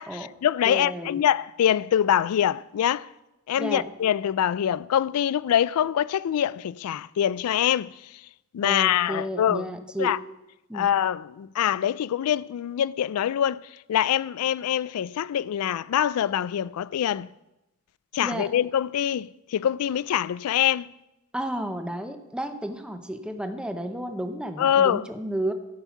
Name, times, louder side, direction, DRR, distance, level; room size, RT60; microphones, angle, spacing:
voice 1, 0.0-3.1 3.5-7.9 8.5-9.7 10.0-10.2 10.7-13.6 13.9-17.3 18.1-20.9 24.6-25.0, left 10 dB, 85° left, 0.3 m, -24 dB
voice 2, 0.6-1.2 3.6-3.9 8.6-10.1 10.7-10.9 18.2-18.5 21.3-25.5, right 1 dB, 5° right, 0.7 m, -32 dB
13.5 x 5.5 x 5.8 m
head